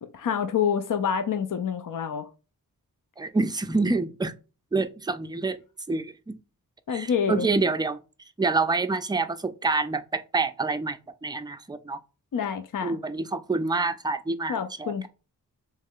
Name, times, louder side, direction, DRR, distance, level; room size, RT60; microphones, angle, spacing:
voice 1, 0.1-2.3 6.9-7.5 12.3-13.0 14.5-15.1, left 7 dB, 55° left, 0.5 m, -27 dB
voice 2, 3.2-4.3 4.7-5.6 5.9-6.3 6.9-8.0 8.4-12.0 12.8-15.1, right 3 dB, 10° right, 0.4 m, -27 dB
3.2 x 3.1 x 3.6 m
wide cardioid pair, 60°, 38 cm